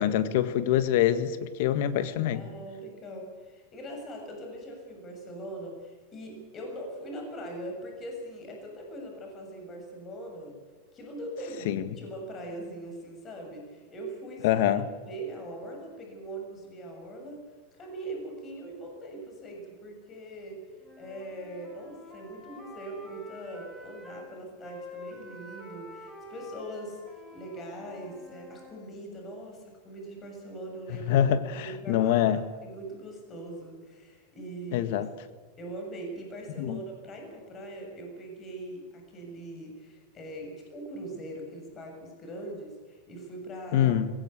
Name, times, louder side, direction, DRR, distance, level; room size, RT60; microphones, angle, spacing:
voice 1, 0.0-2.5 11.6-12.0 14.4-14.9 30.9-32.4 34.7-35.1 36.6-36.8 43.7-44.1, left 11 dB, 65° left, 12 dB, 1.7 m, -25 dB
voice 2, 2.3-10.6 10.9-14.6 15.0-17.4 17.7-20.6 21.0-31.1 31.5-34.9 35.6-44.0, right 1 dB, 30° left, 2 dB, 7.0 m, -41 dB
Wind instrument woodwind instrument, 20.8-24.3 24.6-28.8, left 1 dB, 5° left, 7.8 m, -47 dB
20.5 x 17.5 x 8.4 m, 1.4 s
supercardioid pair, 130°, 0 cm